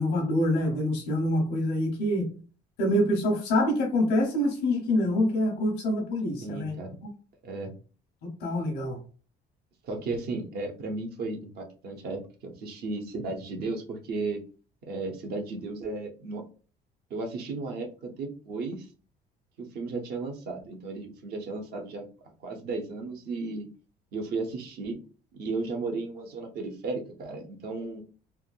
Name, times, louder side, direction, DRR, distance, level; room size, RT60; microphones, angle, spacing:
voice 1, 0.0-2.3 2.8-6.7 8.4-9.0, left 1 dB, 90° left, 0 dB, 0.9 m, -26 dB
voice 2, 6.4-7.0 7.4-7.7 9.8-14.4 14.8-16.4 17.1-18.9 19.6-22.1 22.4-23.7 24.1-25.0 25.3-28.0, right 3 dB, 70° right, 3 dB, 0.8 m, -34 dB
3.5 x 2.2 x 2.4 m, 0.38 s
cardioid pair, 110°, 17 cm